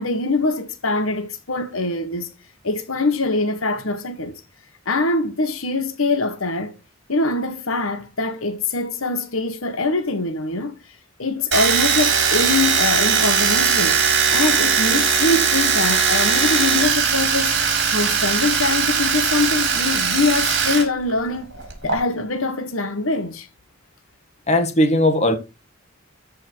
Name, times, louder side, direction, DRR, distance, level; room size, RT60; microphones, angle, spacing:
voice 1, 0.0-2.3 2.6-4.4 4.8-6.7 7.1-10.7 11.2-14.0 14.3-17.6 17.9-21.5 21.8-23.5, left 3 dB, 80° left, 1.5 m, -23 dB
Domestic sounds home sounds, 11.5-20.8 21.1-21.9, right 6 dB, 55° right, 4.5 m, -19 dB
voice 2, 24.5-25.4, left 1 dB, 30° left, 1.7 m, -17 dB
13.5 x 5.6 x 4.6 m
head